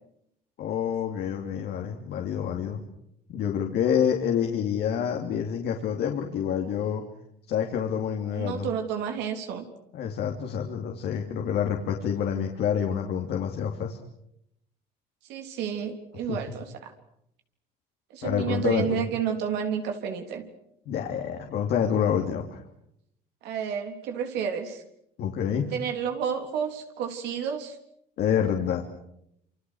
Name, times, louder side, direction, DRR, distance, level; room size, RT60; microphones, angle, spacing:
voice 1, 0.6-2.8 3.3-7.0 7.5-8.7 9.9-14.0 16.3-16.4 18.2-19.0 20.9-22.6 25.2-25.7 28.2-28.8, left 8 dB, 75° left, 2 dB, 3.3 m, -27 dB
voice 2, 8.3-9.7 15.3-16.9 18.1-20.4 23.4-24.8 25.7-27.8, right 7 dB, 90° right, 4 dB, 3.7 m, -30 dB
27.5 x 26.5 x 6.6 m, 0.76 s
cardioid pair, 110°, 17 cm